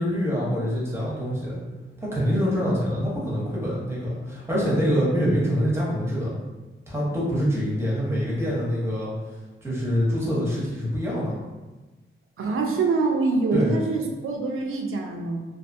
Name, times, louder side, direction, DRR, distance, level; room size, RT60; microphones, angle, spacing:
voice 1, 0.0-1.6 2.0-6.4 6.9-9.1 9.6-11.3 13.5-13.7, equal, 10° right, -6 dB, 0.8 m, -25 dB
voice 2, 12.4-15.4, right 3 dB, 80° right, 3 dB, 0.4 m, -25 dB
2.5 x 2.4 x 2.5 m, 1.2 s
wide cardioid pair, 125°, 21 cm